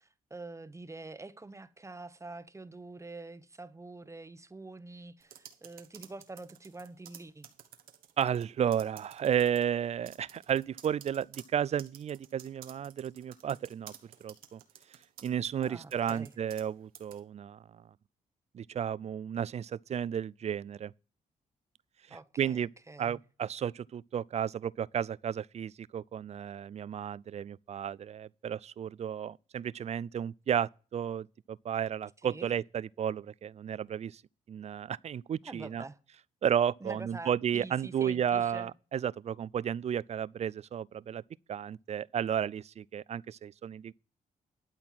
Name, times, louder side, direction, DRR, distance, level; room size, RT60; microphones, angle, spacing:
voice 1, 0.0-7.5 15.6-16.3 22.1-23.2 32.2-32.6 35.4-36.0 36.8-38.7, right 2 dB, 20° right, 1.0 m, -46 dB
sound 1, 5.2-8.4 8.7-9.6 10.0-16.7 16.9-17.2, right 10 dB, 85° right, 1.2 m, -52 dB
voice 2, 8.2-13.9 14.2-14.6 15.2-17.8 18.5-20.9 22.4-22.7 23.0-34.2 34.5-35.8 36.4-41.2 41.5-43.9, right 9 dB, 50° right, 0.4 m, -33 dB
12.0 x 4.4 x 7.6 m
cardioid pair, 70°, 15 cm